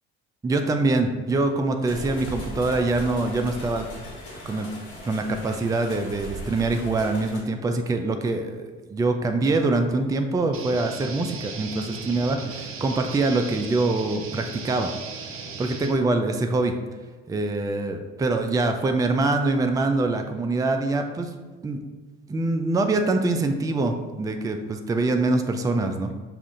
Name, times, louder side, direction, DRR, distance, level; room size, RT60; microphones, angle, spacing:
voice 1, 0.4-3.9 4.5-4.7 5.0-8.7 8.9-14.9 15.6-16.7 17.3-21.3 21.6-21.8 22.3-26.1, right 2 dB, 10° right, 6 dB, 0.4 m, -24 dB
sound 1, 1.8-7.4, equal, 65° left, 1.4 m, -38 dB
sound 2, 10.5-15.9, right 5 dB, 45° right, 0.7 m, -37 dB
5.6 x 2.5 x 3.7 m, 1.4 s
hypercardioid pair, 50°, 29 cm